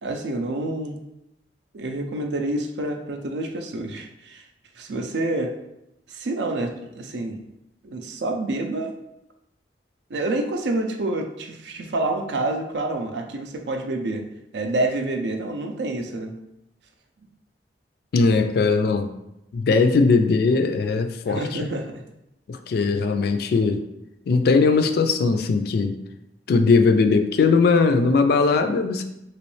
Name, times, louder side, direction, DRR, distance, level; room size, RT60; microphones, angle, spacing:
voice 1, 0.0-1.0 1.7-4.4 4.8-5.5 6.1-7.4 7.8-8.9 10.1-14.2 14.5-16.3 21.3-22.0, right 2 dB, 75° right, 4 dB, 0.5 m, -28 dB
voice 2, 18.1-19.1 19.5-21.6 22.5-23.8 24.3-26.0 26.5-29.0, left 4 dB, 60° left, 7 dB, 0.3 m, -19 dB
3.0 x 3.0 x 3.1 m, 0.86 s
head